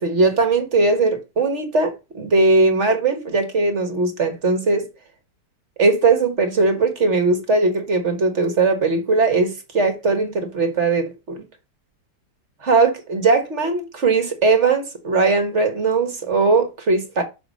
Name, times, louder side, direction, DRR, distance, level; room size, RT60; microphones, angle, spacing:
voice 1, 0.0-4.9 5.8-11.4 12.6-17.2, right 3 dB, 45° right, 1.6 m, -19 dB
6.0 x 5.1 x 6.3 m
omnidirectional pair, 1.8 m